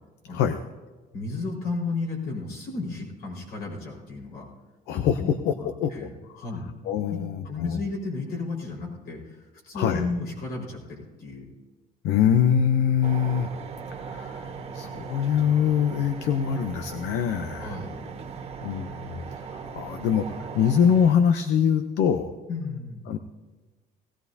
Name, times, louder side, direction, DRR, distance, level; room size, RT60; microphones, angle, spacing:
voice 1, 1.1-4.5 5.2-5.3 5.6-6.1 6.4-6.7 7.1-7.2 7.4-11.4 17.6-18.0 22.5-23.2, left 3 dB, 65° left, -2 dB, 5.1 m, -33 dB
voice 2, 4.9-5.5 5.8-5.9 6.4-6.5 6.8-7.8 9.7-10.1 12.0-13.5 13.9-17.8 18.6-22.3 23.1-23.2, left 8 dB, 85° left, 9 dB, 0.7 m, -24 dB
sound 1, 13.0-21.1, right 5 dB, 35° right, 1.6 m, -38 dB
18.5 x 16.5 x 2.8 m, 1.3 s
cardioid pair, 110°, 17 cm